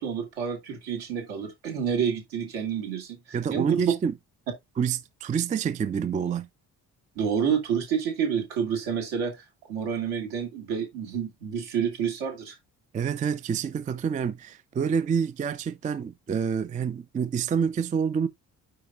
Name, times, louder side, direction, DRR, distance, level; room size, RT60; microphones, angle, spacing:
voice 1, 0.0-3.2 3.5-3.8 7.2-12.6, right 7 dB, 65° right, 2.4 m, -29 dB
voice 2, 3.3-4.1 4.8-6.5 12.9-18.3, right 7 dB, 15° right, 0.4 m, -27 dB
9.1 x 4.8 x 2.6 m
figure-of-eight pair, 40°, 49 cm